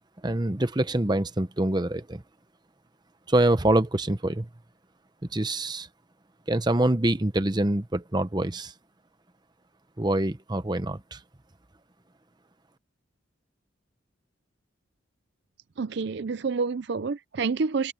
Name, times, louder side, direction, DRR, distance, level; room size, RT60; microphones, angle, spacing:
voice 1, 0.2-2.2 3.3-4.5 5.3-5.9 6.5-8.7 10.0-11.2, right 1 dB, 20° right, 0.9 m, -25 dB
voice 2, 15.8-17.9, right 4 dB, 55° right, 0.5 m, -28 dB
head